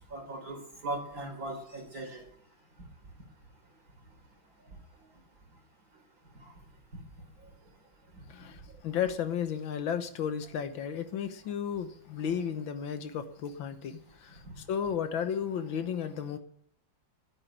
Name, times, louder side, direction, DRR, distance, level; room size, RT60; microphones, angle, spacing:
voice 1, 0.1-2.3 6.4-6.5 6.9-7.0 7.4-7.5 8.1-8.5 14.4-14.5, right 2 dB, 45° right, 4.4 m, -39 dB
voice 2, 8.8-16.4, left 8 dB, 75° left, 1.9 m, -33 dB
10.5 x 9.2 x 9.8 m
omnidirectional pair, 2.2 m